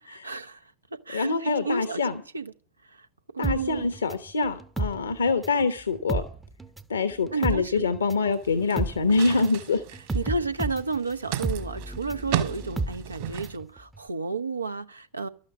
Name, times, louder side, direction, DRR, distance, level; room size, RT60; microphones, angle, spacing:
voice 1, 0.1-0.6 0.9-2.0 2.3-2.5 2.9-3.1 3.3-3.9 7.3-7.9 10.1-15.3, right 3 dB, 80° right, 0.7 m, -32 dB
voice 2, 1.1-2.1 3.4-6.2 6.9-9.8, left 4 dB, 70° left, 1.0 m, -25 dB
sound 1, 3.4-5.7 5.9-13.6 13.9-14.0, right 2 dB, 10° right, 0.7 m, -32 dB
sound 2, 8.3-13.6, right 11 dB, 50° right, 1.7 m, -35 dB
12.5 x 8.5 x 8.3 m
figure-of-eight pair, 90°, 0 cm